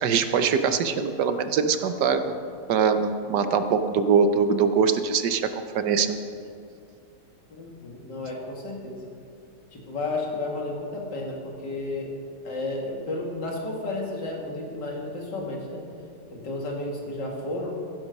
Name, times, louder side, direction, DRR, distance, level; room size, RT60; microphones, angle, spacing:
voice 1, 0.0-2.3 2.7-5.4 5.7-6.2, right 6 dB, 75° right, 9 dB, 1.4 m, -22 dB
voice 2, 7.5-9.1 9.7-12.1 12.4-15.8 16.3-17.8, left 2 dB, 80° left, -1 dB, 2.8 m, -32 dB
15.5 x 11.0 x 5.3 m, 2.3 s
omnidirectional pair, 1.8 m